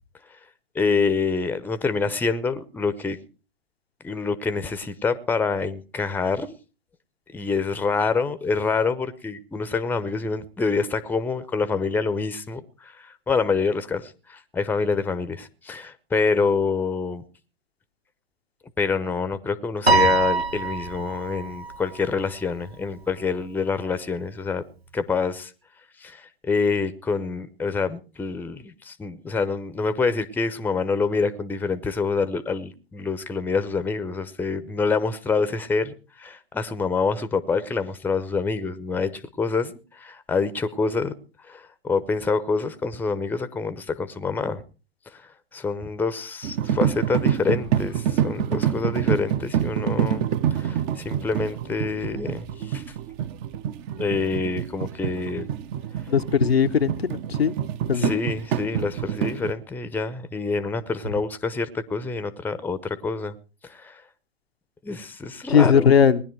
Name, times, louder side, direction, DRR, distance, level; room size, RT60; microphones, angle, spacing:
voice 1, 0.7-3.2 4.0-6.5 7.3-17.2 18.8-24.6 24.9-25.5 26.0-41.1 41.4-44.6 45.1-45.2 45.5-52.9 54.0-55.5 57.9-63.3 63.6-64.0 64.8-66.0, left 4 dB, 5° left, 0.8 m, -26 dB
Piano, 19.9-22.4, right 3 dB, 90° right, 2.1 m, -23 dB
sound 1, 46.4-59.5, right 9 dB, 35° right, 1.0 m, -26 dB
voice 2, 56.1-57.6 57.9-58.1 65.5-66.2, left 7 dB, 80° left, 1.0 m, -19 dB
19.5 x 10.5 x 4.6 m
figure-of-eight pair, 110°, 30 cm